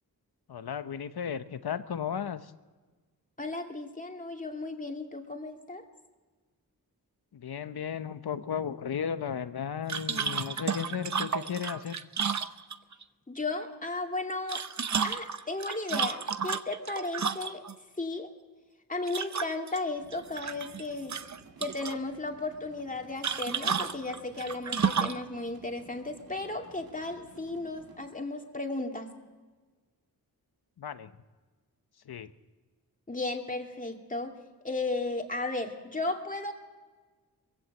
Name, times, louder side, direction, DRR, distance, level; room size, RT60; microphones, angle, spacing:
voice 1, 0.5-2.5 7.3-12.0 30.8-31.1 32.1-32.3, left 7 dB, 75° left, 11 dB, 1.0 m, -35 dB
voice 2, 3.4-5.8 13.3-14.6 15.0-17.6 18.0-18.3 18.9-21.2 21.6-29.1 33.1-34.3 34.6-36.5, left 2 dB, 20° left, 2 dB, 2.5 m, -35 dB
sound 1, 9.9-13.0 14.3-17.7 19.1-19.8 20.1-20.8 21.1-22.0 23.2-25.2, right 6 dB, 45° right, 0.9 m, -32 dB
sound 2, 20.0-28.1, right 4 dB, 65° right, 2.1 m, -54 dB
22.0 x 16.0 x 7.8 m, 1.3 s
wide cardioid pair, 105°, 38 cm